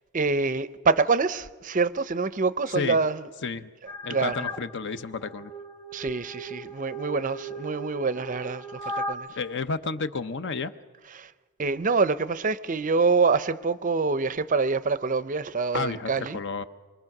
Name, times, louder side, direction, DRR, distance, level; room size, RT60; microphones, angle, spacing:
voice 1, 0.1-3.2 4.1-4.3 5.9-8.8 9.1-9.3 11.2-11.3 11.6-16.4, right 4 dB, 35° right, 0.6 m, -25 dB
sound 1, 3.9-4.6 5.1-9.1, equal, 15° left, 1.4 m, -37 dB
voice 2, 4.0-5.5 8.8-9.0 9.3-10.7 15.7-16.6, left 4 dB, 50° left, 0.8 m, -31 dB
25.5 x 23.0 x 6.0 m
head